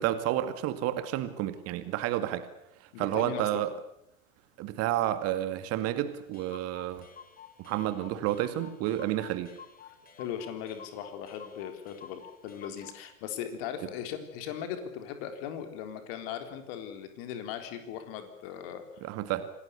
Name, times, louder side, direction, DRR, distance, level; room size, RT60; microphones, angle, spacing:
voice 1, 0.0-2.5 2.8-3.7 4.6-7.1 7.6-9.5 19.0-19.5, right 13 dB, 35° right, 11 dB, 2.1 m, -30 dB
voice 2, 2.9-3.6 10.2-18.8, left 9 dB, 45° left, 7 dB, 3.9 m, -38 dB
Clock, 5.8-5.9 6.1-6.2 6.3-13.0, left 7 dB, 20° left, 3.2 m, -51 dB
27.0 x 18.5 x 8.4 m, 0.77 s
figure-of-eight pair, 90°, 41 cm